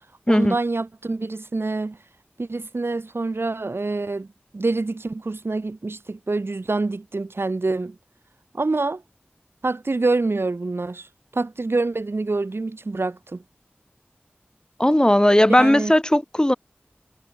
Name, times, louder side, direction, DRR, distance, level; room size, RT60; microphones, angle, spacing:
voice 1, 0.3-2.0 2.4-4.3 4.5-8.0 8.5-9.0 9.6-11.1 11.3-13.4 15.6-15.9, right 3 dB, 85° right, 7.4 m, -26 dB
voice 2, 14.8-16.5, left 1 dB, 20° left, 5.1 m, -17 dB
wide cardioid pair, 55°, 4 cm